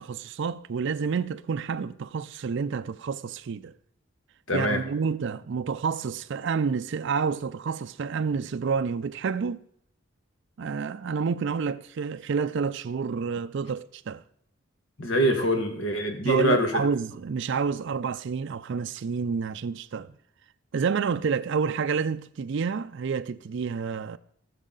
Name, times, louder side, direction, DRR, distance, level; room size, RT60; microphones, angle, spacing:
voice 1, 0.0-3.7 4.5-9.6 10.6-14.2 16.2-20.1 20.7-24.2, right 5 dB, 60° right, 0.4 m, -29 dB
voice 2, 4.5-4.8 15.0-16.8, equal, 65° left, 1.8 m, -24 dB
18.5 x 6.2 x 3.9 m
head